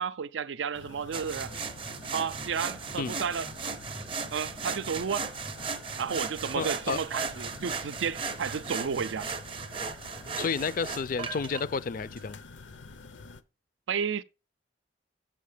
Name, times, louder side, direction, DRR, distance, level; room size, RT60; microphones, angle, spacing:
voice 1, 0.0-1.5 2.1-3.5 4.3-5.3 6.0-9.3 13.9-14.2, right 6 dB, 90° right, 0.4 m, -32 dB
sound 1, 0.7-13.4, left 3 dB, 85° left, 0.7 m, -48 dB
sound 2, 1.1-11.6 12.2-12.3, right 5 dB, 30° right, 0.6 m, -37 dB
voice 2, 6.6-7.0 10.4-12.4, left 5 dB, 50° left, 0.4 m, -31 dB
7.3 x 6.4 x 4.9 m
head